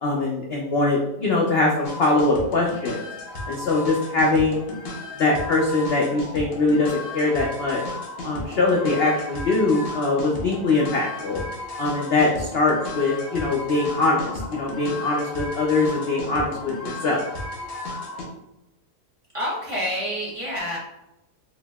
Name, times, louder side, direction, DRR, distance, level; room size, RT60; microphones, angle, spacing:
voice 1, 0.0-3.0 3.5-4.6 5.2-7.8 8.2-11.4 11.8-17.2, left 3 dB, 80° left, -2 dB, 0.5 m, -22 dB
sound 1, 1.8-18.2, left 2 dB, 50° left, 0.8 m, -34 dB
voice 2, 19.3-20.8, equal, 30° right, -6 dB, 0.6 m, -28 dB
4.8 x 2.6 x 2.3 m, 0.90 s
omnidirectional pair, 1.7 m